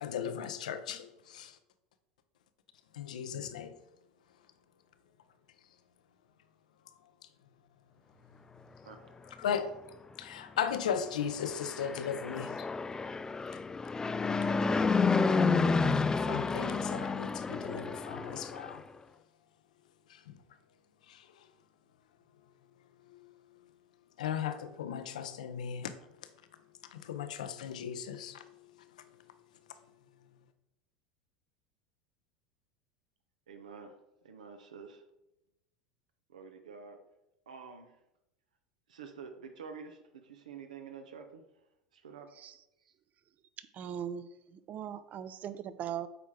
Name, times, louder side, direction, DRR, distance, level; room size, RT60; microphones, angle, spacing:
voice 1, 0.0-1.6 2.9-3.8 9.3-9.8 10.2-12.7 16.2-18.8 20.1-20.4 21.1-21.3 23.1-23.2 24.2-25.9 26.9-28.6, left 8 dB, 80° left, 10 dB, 0.7 m, -37 dB
voice 2, 8.8-9.4 33.5-34.0 34.2-35.0 36.3-37.0 37.5-37.9 38.9-41.4 41.9-42.3, right 6 dB, 85° right, 7 dB, 1.0 m, -48 dB
Fixed-wing aircraft airplane, 11.4-18.8, left 4 dB, 15° left, 0.4 m, -30 dB
voice 3, 43.7-44.2 44.7-46.1, right 9 dB, 40° right, 14 dB, 0.6 m, -39 dB
7.9 x 4.5 x 4.8 m, 0.89 s
hypercardioid pair, 85°, 4 cm